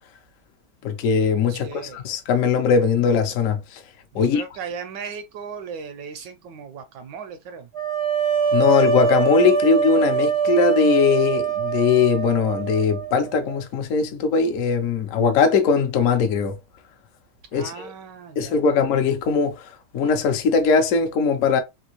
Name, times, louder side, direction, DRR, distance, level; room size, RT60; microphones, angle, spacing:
voice 1, 0.8-3.8 4.1-4.4 8.5-16.6 17.5-17.9 18.4-21.6, left 5 dB, 75° left, 0.7 m, -20 dB
voice 2, 1.5-2.0 4.1-7.7 17.5-18.8, right 6 dB, 75° right, 1.0 m, -37 dB
sound 1, 7.7-13.6, right 7 dB, 35° right, 0.4 m, -23 dB
3.5 x 2.6 x 2.9 m
omnidirectional pair, 2.3 m